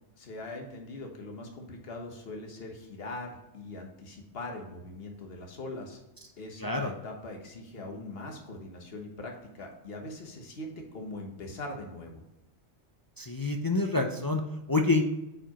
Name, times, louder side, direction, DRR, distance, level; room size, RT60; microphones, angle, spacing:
voice 1, 0.2-6.0 6.4-12.2, left 2 dB, 60° left, 2 dB, 1.5 m, -41 dB
voice 2, 6.6-6.9 13.2-15.1, left 3 dB, 25° left, 2 dB, 0.5 m, -27 dB
8.8 x 4.7 x 3.0 m, 0.96 s
omnidirectional pair, 1.1 m